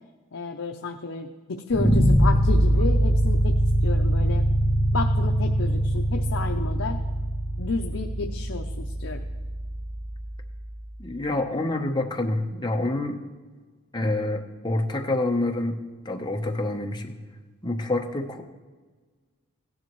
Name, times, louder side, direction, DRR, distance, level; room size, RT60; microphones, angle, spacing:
voice 1, 0.3-4.4 4.9-7.0 7.6-9.2, left 4 dB, 65° left, 2 dB, 0.6 m, -31 dB
sound 1, 1.7-10.7, right 1 dB, 10° right, 0.6 m, -23 dB
voice 2, 11.0-13.2 13.9-15.8 16.0-17.2 17.6-18.4, left 2 dB, 20° left, 3 dB, 0.8 m, -27 dB
16.5 x 10.0 x 3.1 m, 1.4 s
head